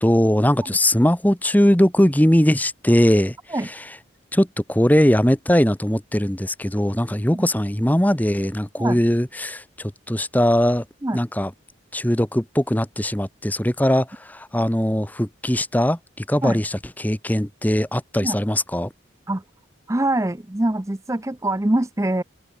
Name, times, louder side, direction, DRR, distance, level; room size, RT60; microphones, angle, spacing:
voice 1, 0.0-4.0 4.3-10.8 11.1-11.5 11.9-18.9, equal, 10° left, 1.0 m, -20 dB
voice 2, 19.9-22.2, right 1 dB, 15° right, 0.6 m, -23 dB
open air
head